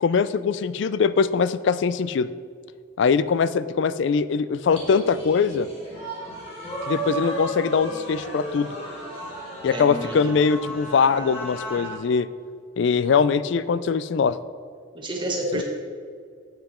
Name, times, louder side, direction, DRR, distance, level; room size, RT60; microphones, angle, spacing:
voice 1, 0.0-2.3 3.0-5.7 6.9-8.7 9.6-12.3 12.8-14.4 15.5-15.6, left 5 dB, 60° left, 14 dB, 0.3 m, -22 dB
sound 1, 4.7-12.0, right 1 dB, 30° left, 1.9 m, -34 dB
voice 2, 9.7-10.3 14.9-15.6, right 1 dB, 25° right, -1 dB, 1.3 m, -29 dB
7.9 x 7.5 x 4.3 m, 2.1 s
head